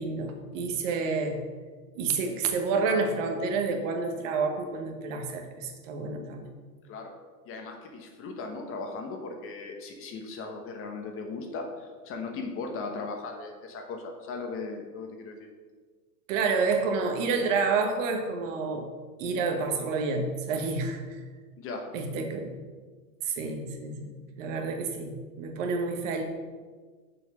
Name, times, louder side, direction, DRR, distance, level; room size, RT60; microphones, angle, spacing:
voice 1, 0.0-1.4 1.9-6.5 16.3-18.9 19.2-21.2 21.9-22.6 23.2-26.2, right 4 dB, 50° right, 4 dB, 1.2 m, -29 dB
voice 2, 7.5-15.3 21.6-21.9, left 3 dB, 25° left, 3 dB, 1.0 m, -37 dB
6.6 x 4.6 x 6.0 m, 1.5 s
hypercardioid pair, 130°, 49 cm